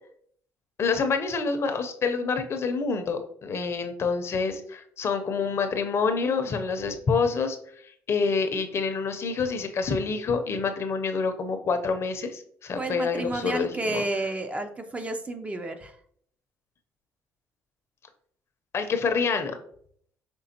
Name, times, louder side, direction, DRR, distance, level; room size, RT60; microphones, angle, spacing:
voice 1, 0.8-7.6 8.1-14.0 18.7-19.6, left 5 dB, 50° left, 7 dB, 0.6 m, -27 dB
voice 2, 12.8-16.0, right 2 dB, 20° right, 6 dB, 0.5 m, -31 dB
5.2 x 3.3 x 2.8 m, 0.62 s
supercardioid pair, 80°, 6 cm